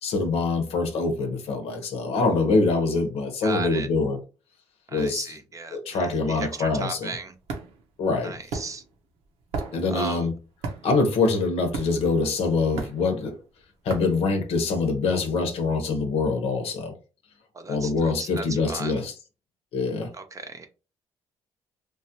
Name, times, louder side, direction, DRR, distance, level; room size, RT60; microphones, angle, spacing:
voice 1, 0.0-4.2 4.9-5.3 5.7-7.1 8.0-8.4 9.7-10.3 10.8-13.4 13.8-16.9 17.7-19.1 19.7-20.1, left 3 dB, 75° left, 0.8 m, -24 dB
voice 2, 3.4-3.9 4.9-7.3 8.2-8.8 9.9-10.2 17.5-19.0 20.1-20.7, right 3 dB, 30° right, 0.6 m, -36 dB
sound 1, 7.0-15.0, right 4 dB, 85° right, 0.7 m, -37 dB
3.2 x 2.4 x 2.8 m
cardioid pair, 85°, 10 cm